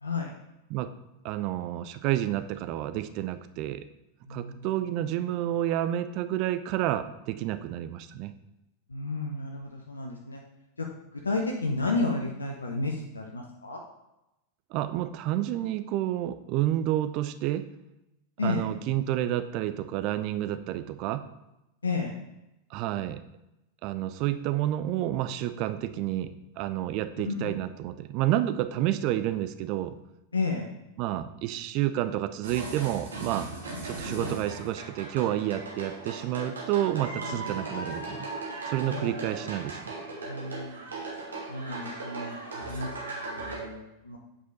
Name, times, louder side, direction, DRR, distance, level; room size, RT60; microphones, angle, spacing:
voice 1, 1.2-3.8 4.3-8.3 14.7-17.6 18.4-21.2 22.7-23.2 23.8-29.9 31.0-33.5 33.8-38.3 38.7-39.9, right 13 dB, 40° right, 11 dB, 0.5 m, -30 dB
voice 2, 4.3-4.7 5.0-5.1 8.9-10.4 10.8-10.9 11.1-13.8 18.4-18.7 21.8-22.1 27.2-27.5 30.3-30.7 34.1-34.3 37.2-37.7 38.9-39.1 40.3-40.8 41.5-42.9 43.2-44.2, left 3 dB, 75° left, 1 dB, 0.8 m, -32 dB
sound 1, 32.4-43.6, right 2 dB, 70° right, 1.7 m, -38 dB
8.3 x 4.9 x 4.0 m, 0.91 s
figure-of-eight pair, 90°, 0 cm